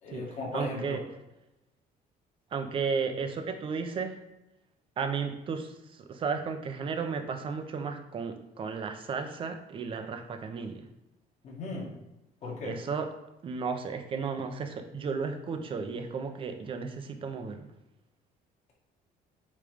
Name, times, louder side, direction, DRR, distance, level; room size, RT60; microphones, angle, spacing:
voice 1, 0.0-1.0 11.4-11.9 12.4-12.8, left 2 dB, 45° left, -2 dB, 2.1 m, -36 dB
voice 2, 0.5-1.0 2.5-4.2 5.0-10.8 12.6-13.1 13.4-17.7, right 5 dB, 35° right, 6 dB, 0.7 m, -34 dB
8.5 x 3.3 x 5.1 m, 0.94 s
cardioid pair, 170°, 17 cm